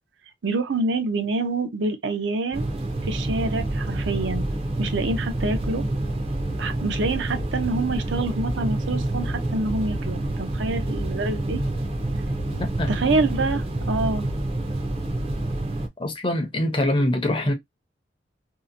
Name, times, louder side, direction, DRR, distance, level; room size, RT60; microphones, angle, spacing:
voice 1, 0.4-2.7 3.0-4.5 4.8-5.8 6.6-11.6 12.9-14.3, right 3 dB, 80° right, 0.6 m, -26 dB
sound 1, 2.5-15.9, right 1 dB, 30° right, 0.5 m, -27 dB
voice 2, 12.5-12.9 16.0-17.5, left 1 dB, 25° left, 0.6 m, -24 dB
2.7 x 2.1 x 2.5 m
head